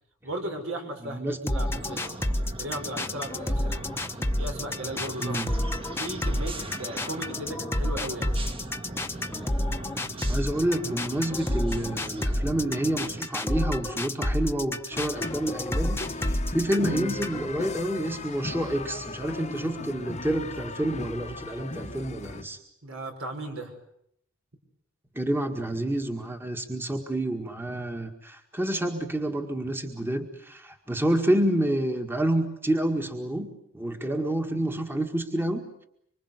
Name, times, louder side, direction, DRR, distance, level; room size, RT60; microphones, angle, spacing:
voice 1, 0.2-2.1 2.6-3.8 4.4-5.4 5.9-8.3 22.8-23.7, right 1 dB, 70° right, 4 dB, 5.5 m, -36 dB
voice 2, 1.0-1.5 5.2-5.6 10.3-22.6 25.2-35.8, right 1 dB, 10° right, 4 dB, 1.8 m, -28 dB
sound 1, 1.5-17.5, left 1 dB, 10° left, 1.2 m, -29 dB
sound 2, 1.6-13.3, right 2 dB, 25° right, 1.8 m, -40 dB
sound 3, 14.9-22.4, left 2 dB, 35° left, 1.2 m, -37 dB
25.5 x 25.0 x 8.2 m, 0.72 s
head